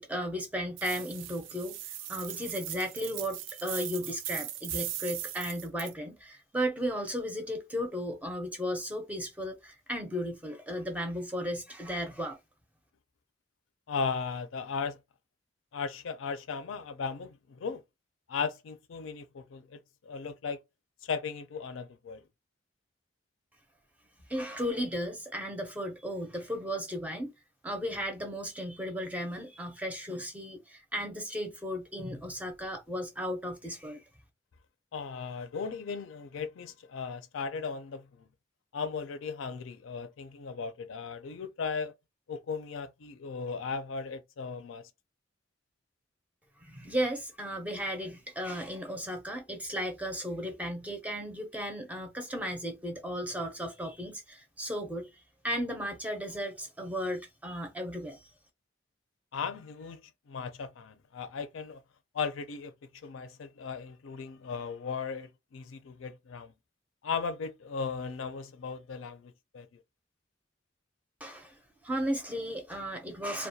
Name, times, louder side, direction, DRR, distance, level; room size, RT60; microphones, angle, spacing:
voice 1, 0.0-1.8 2.1-12.4 24.3-27.3 27.6-34.0 46.6-55.1 55.4-58.2 71.2-71.6 71.8-73.5, equal, 10° right, 0.5 m, -35 dB
sound 1, 0.8-5.9, right 12 dB, 80° right, 0.3 m, -39 dB
voice 2, 13.9-15.0 15.7-17.8 18.3-20.6 21.0-22.2 34.9-38.3 38.7-41.9 42.3-44.8 59.3-60.0 60.3-61.8 62.1-62.7 63.0-66.5 67.0-69.8, left 5 dB, 90° left, 0.4 m, -37 dB
2.3 x 2.1 x 2.6 m
head